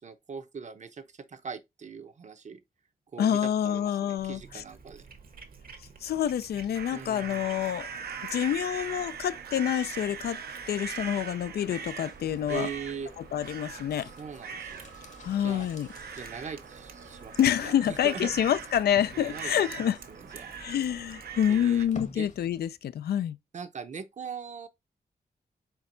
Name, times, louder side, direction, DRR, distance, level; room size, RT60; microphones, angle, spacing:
voice 1, 0.0-2.6 3.1-5.0 6.9-7.5 12.5-13.1 13.9-14.8 15.4-15.7 16.1-18.4 19.1-19.5 19.8-20.6 21.5-21.9 22.1-22.3 23.5-24.7, right 5 dB, 50° right, 0.7 m, -41 dB
voice 2, 3.2-4.4 6.0-7.9 8.3-10.4 10.7-12.7 13.3-14.1 15.2-15.9 17.4-20.0 20.5-23.4, left 10 dB, 85° left, 0.4 m, -27 dB
Cat, 4.2-21.9, right 5 dB, 65° right, 1.1 m, -53 dB
sound 1, 6.7-21.9, right 6 dB, 80° right, 0.7 m, -41 dB
sound 2, 11.7-22.9 23.1-23.2, left 3 dB, 50° left, 1.0 m, -51 dB
4.5 x 4.3 x 2.6 m
wide cardioid pair, 95°, 16 cm